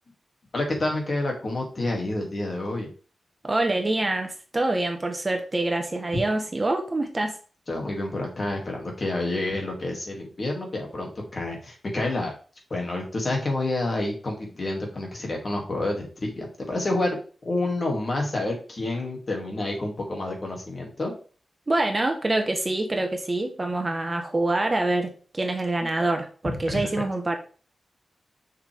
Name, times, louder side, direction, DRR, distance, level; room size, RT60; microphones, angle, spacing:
voice 1, 0.5-2.9 7.7-12.3 12.7-17.2 17.4-21.1 26.4-27.0, left 2 dB, 40° left, 0 dB, 2.5 m, -29 dB
voice 2, 3.4-7.4 21.7-27.4, right 2 dB, 25° right, 4 dB, 1.2 m, -26 dB
6.9 x 6.1 x 3.5 m, 0.38 s
wide cardioid pair, 115°, 0 cm